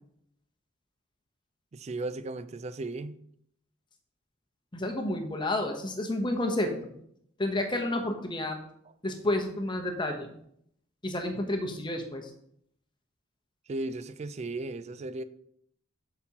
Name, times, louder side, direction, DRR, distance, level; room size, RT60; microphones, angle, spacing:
voice 1, 1.7-3.2 13.7-15.2, right 2 dB, 30° right, 0.3 m, -36 dB
voice 2, 4.7-6.9 7.4-8.6 9.0-10.3 11.0-12.3, left 1 dB, 20° left, 0.8 m, -30 dB
8.2 x 5.9 x 2.9 m
head